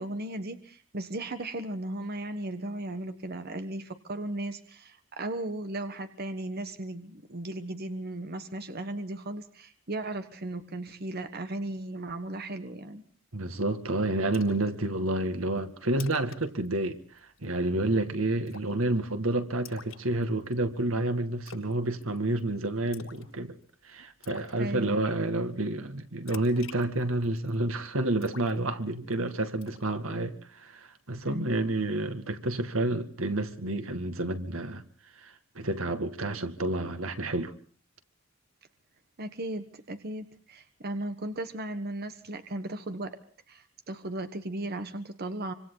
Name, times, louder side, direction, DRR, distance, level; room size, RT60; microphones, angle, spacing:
voice 1, 0.0-13.0 24.6-25.0 31.3-31.7 39.2-43.2 43.5-45.5, right 1 dB, 50° right, 1.4 m, -36 dB
voice 2, 13.3-23.6 23.8-34.8 35.2-37.5, right 2 dB, 85° right, 2.1 m, -29 dB
Splash splatter, 14.3-14.7 15.1-15.2 15.6-15.7 15.9-16.4 16.7-16.9 17.2-17.6 18.5-18.8 19.7-20.5 21.5-21.8 22.0-22.4 22.9-23.3 23.6-23.7 24.2-24.5 26.3-27.5 28.2-29.1 29.6-29.9, left 5 dB, 75° left, 6.8 m, -46 dB
26.0 x 25.5 x 4.0 m
head